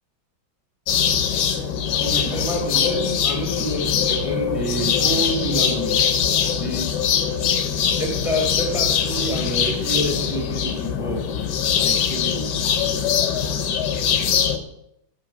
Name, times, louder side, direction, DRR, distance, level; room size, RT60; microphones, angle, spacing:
sound 1, 0.9-14.6, left 8 dB, 65° left, 1.1 m, -22 dB
voice 1, 2.0-6.1 6.5-7.0 7.9-11.3 11.8-12.7, equal, 20° left, 1 dB, 1.1 m, -28 dB
6.7 x 5.2 x 6.2 m, 0.79 s
omnidirectional pair, 2.3 m